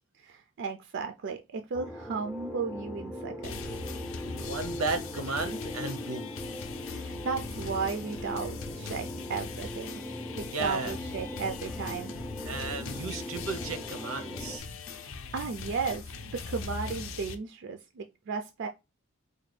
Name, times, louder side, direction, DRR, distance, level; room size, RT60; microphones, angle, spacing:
voice 1, 0.2-3.6 6.8-10.0 10.3-12.1 14.9-18.7, right 5 dB, 55° right, 0.4 m, -35 dB
sound 1, 1.7-14.6, left 1 dB, ahead, 0.4 m, -40 dB
sound 2, 3.4-17.4, left 5 dB, 65° left, 0.5 m, -41 dB
voice 2, 4.4-6.3 10.5-10.9 12.4-14.7, right 3 dB, 85° right, 0.7 m, -34 dB
4.2 x 2.2 x 3.2 m
head